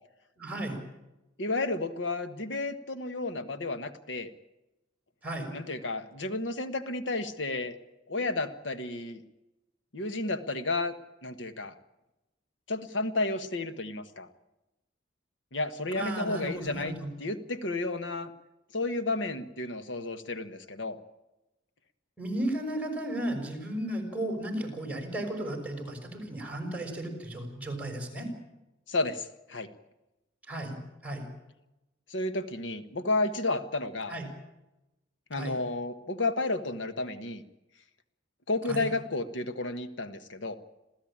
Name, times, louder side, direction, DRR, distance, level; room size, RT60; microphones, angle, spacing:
voice 1, 0.4-0.8 5.2-5.5 15.9-17.1 22.2-28.3 30.5-30.7 31.0-31.2 34.1-34.3 35.3-35.6 38.7-38.9, right 1 dB, 5° right, 3 dB, 6.0 m, -34 dB
voice 2, 1.4-4.3 5.5-7.8 8.1-9.2 9.9-10.9 11.2-11.7 12.7-14.3 15.5-18.3 18.7-21.0 28.9-29.7 32.1-34.1 35.3-37.4 38.5-40.6, left 2 dB, 70° left, 10 dB, 1.5 m, -32 dB
27.5 x 15.5 x 8.9 m, 0.97 s
head